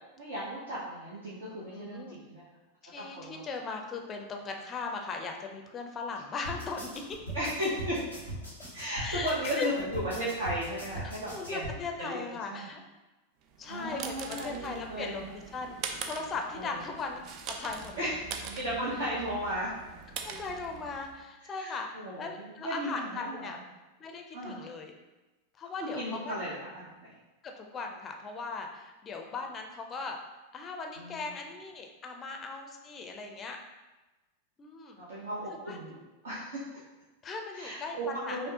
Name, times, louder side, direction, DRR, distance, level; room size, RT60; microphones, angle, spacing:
voice 1, 0.2-2.4 3.0-3.4 7.3-8.0 8.7-11.7 12.0-12.2 12.5-12.7 13.7-15.2 16.5-16.7 18.0-18.1 18.5-19.7 21.6-23.6 24.3-24.6 25.8-27.1 31.0-31.3 34.9-36.0 36.2-36.6 37.5-38.4, equal, 60° right, -8 dB, 0.8 m, -35 dB
voice 2, 1.7-2.2 2.8-7.2 9.0-9.7 11.0-12.8 13.6-15.8 16.0-17.2 17.5-18.1 20.2-21.9 22.2-23.6 24.0-24.9 25.5-26.3 27.4-30.2 30.5-33.6 34.6-35.0 35.5-36.0 37.2-38.4, left 4 dB, 25° left, 3 dB, 0.5 m, -38 dB
sound 1, 6.4-11.8, right 1 dB, 85° right, 1.2 m, -40 dB
sound 2, 13.5-21.2, right 5 dB, 40° right, 0.4 m, -42 dB
5.2 x 2.1 x 2.8 m, 1.1 s
figure-of-eight pair, 90°, 0 cm